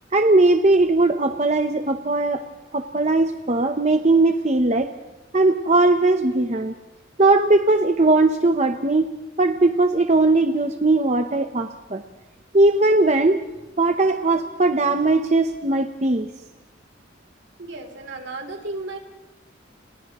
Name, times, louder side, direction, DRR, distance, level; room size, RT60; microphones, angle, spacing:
voice 1, 0.1-2.4 2.7-4.9 5.3-6.7 7.2-9.1 9.4-12.0 12.5-13.4 13.8-16.3, right 2 dB, 35° right, 6 dB, 0.8 m, -19 dB
voice 2, 17.6-19.0, right 2 dB, 75° right, 3 dB, 3.3 m, -34 dB
30.0 x 29.5 x 3.0 m, 1.1 s
head